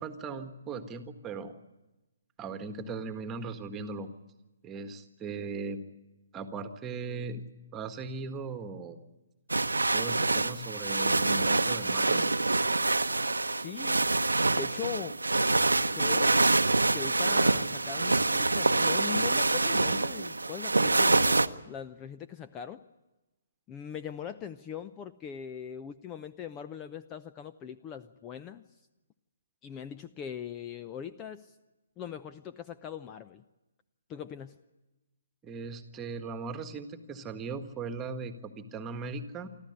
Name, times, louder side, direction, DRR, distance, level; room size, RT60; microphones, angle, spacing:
voice 1, 0.0-1.5 2.4-4.1 4.6-5.8 6.3-7.4 7.7-9.0 9.9-12.2 35.4-39.5, right 4 dB, 15° right, 8 dB, 1.6 m, -38 dB
sound 1, 9.5-21.5, right 2 dB, 85° right, 0.8 m, -26 dB
voice 2, 13.6-14.0 14.5-15.2 15.9-16.4 16.9-22.8 23.7-28.6 29.6-31.5 32.0-33.4 34.1-34.6, left 8 dB, 20° left, 11 dB, 0.7 m, -41 dB
25.5 x 14.0 x 9.7 m, 1.0 s
figure-of-eight pair, 135°, 0 cm